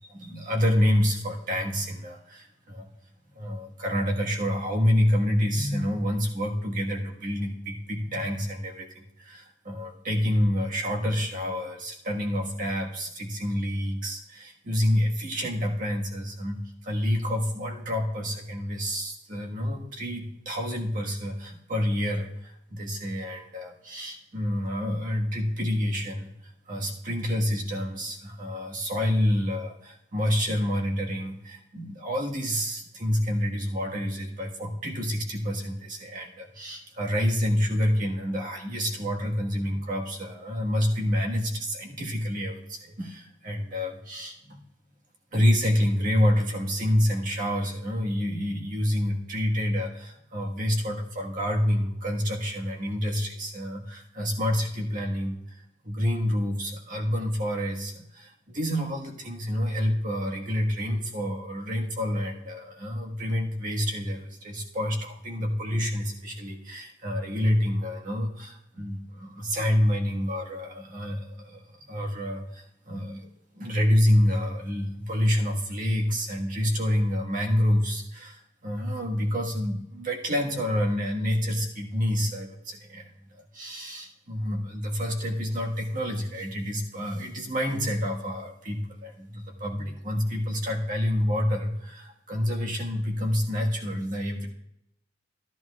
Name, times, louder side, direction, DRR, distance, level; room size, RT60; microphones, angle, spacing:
voice 1, 0.1-2.9 3.3-44.6 45.3-73.3 73.5-83.1 83.5-94.5, equal, 45° right, 0 dB, 1.5 m, -28 dB
13.5 x 12.5 x 2.4 m, 0.79 s
head